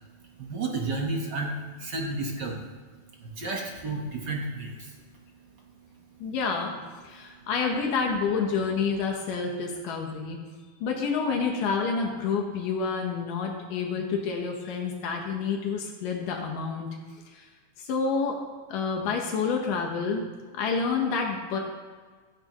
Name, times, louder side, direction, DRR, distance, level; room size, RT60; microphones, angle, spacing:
voice 1, 0.4-2.7 3.2-5.0 5.8-5.9, right 2 dB, 55° right, 0 dB, 1.2 m, -32 dB
voice 2, 6.2-10.4 10.8-16.9 17.3-17.5 17.8-18.4 18.7-20.2 20.5-21.6, left 5 dB, 80° left, 1 dB, 2.8 m, -28 dB
15.5 x 14.0 x 3.1 m, 1.4 s
omnidirectional pair, 3.8 m